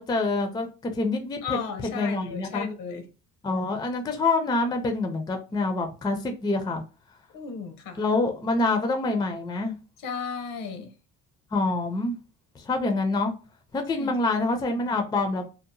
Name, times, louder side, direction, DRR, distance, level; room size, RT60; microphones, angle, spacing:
voice 1, 0.0-1.6 1.9-2.7 3.4-6.8 8.0-9.7 11.5-12.2 12.6-13.3 13.7-15.4, left 3 dB, 15° left, 0.4 m, -26 dB
voice 2, 1.4-3.1 7.3-8.0 10.0-10.9 14.0-14.2, left 6 dB, 80° left, 0.8 m, -35 dB
2.8 x 2.0 x 2.5 m
cardioid pair, 140°, 33 cm